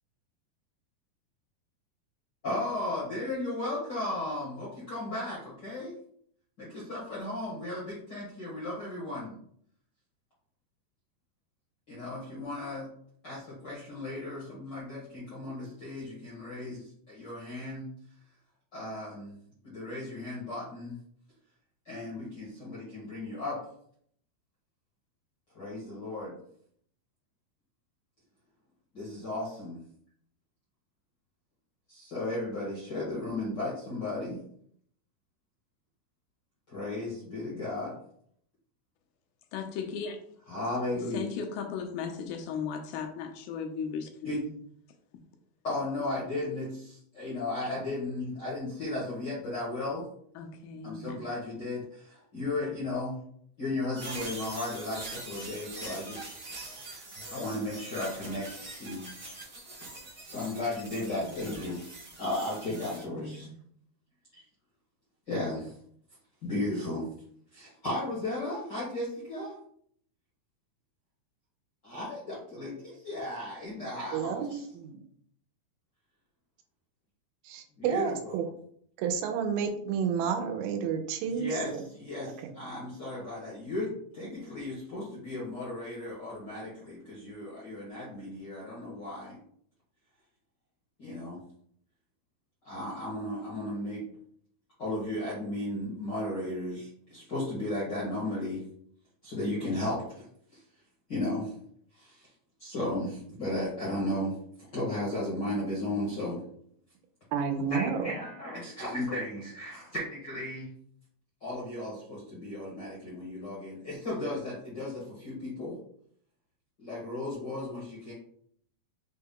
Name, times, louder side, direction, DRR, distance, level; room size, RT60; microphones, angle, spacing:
voice 1, 2.4-5.9 6.6-9.4 11.9-12.9 13.2-17.9 18.7-19.4 19.6-21.0 21.8-23.6 25.5-26.4 28.9-29.8 31.9-34.4 36.7-37.9 40.5-41.3 44.2-44.4 45.6-50.0 50.8-53.2 53.6-56.4 57.3-59.1 60.2-61.8 62.2-63.5 64.3-64.4 65.3-65.7 66.4-67.1 67.5-69.5 71.8-74.7 77.8-78.5 81.3-89.4 91.0-91.4 92.6-94.0 94.8-98.6 99.2-100.3 100.5-100.6 101.1-101.5 101.9-102.3 102.6-104.4 104.7-106.4 107.7-110.7 111.4-115.8 116.8-118.1, left 1 dB, 65° left, -8 dB, 1.0 m, -35 dB
voice 2, 39.5-40.2 41.0-44.1 44.4-44.5 50.4-51.3 52.6-52.7 61.2-61.6 62.9-63.5, left 6 dB, 85° left, 5 dB, 2.5 m, -37 dB
sound 1, 54.0-63.0, right 2 dB, 50° right, 1.2 m, -43 dB
voice 3, 74.1-75.0 77.5-78.4 79.0-81.8 107.3-108.1, right 7 dB, 85° right, 7 dB, 2.5 m, -30 dB
6.0 x 2.3 x 3.5 m, 0.65 s
omnidirectional pair, 4.3 m